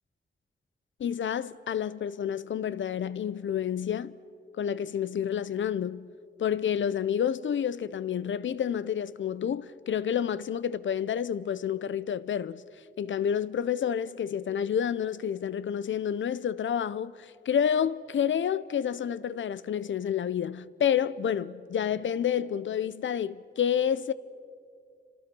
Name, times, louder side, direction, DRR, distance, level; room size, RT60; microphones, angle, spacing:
voice 1, 1.0-4.1 4.5-6.1 6.4-12.6 13.0-24.1, left 8 dB, 75° left, 0.7 m, -29 dB
28.0 x 26.0 x 6.1 m
wide cardioid pair, 105°, 20 cm